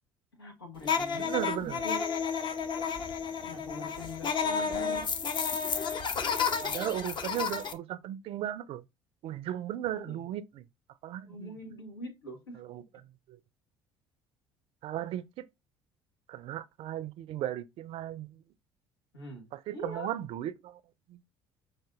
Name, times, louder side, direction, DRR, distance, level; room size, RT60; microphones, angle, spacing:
voice 1, 0.3-2.2 3.4-5.1 9.9-10.2 11.2-12.6 19.1-20.1, equal, 85° left, 1.1 m, -43 dB
sound 1, 0.8-7.7, left 6 dB, 40° left, 0.7 m, -31 dB
voice 2, 1.1-1.8 4.7-5.0 6.6-8.8 9.2-10.6 11.0-11.6 12.6-12.8 13.3-13.4 14.8-15.4 16.3-18.4 19.5-20.8 21.1-21.2, right 12 dB, 50° right, 0.4 m, -36 dB
5.7 x 2.6 x 2.3 m
figure-of-eight pair, 55°, 12 cm